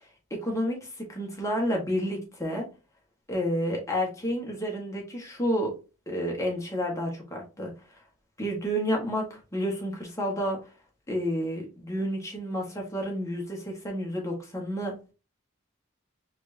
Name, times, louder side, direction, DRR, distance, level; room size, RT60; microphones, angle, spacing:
voice 1, 0.3-2.6 3.3-5.7 6.1-7.7 8.4-10.6 11.1-15.1, equal, 15° left, 1.6 m, -30 dB
4.4 x 3.5 x 2.8 m
head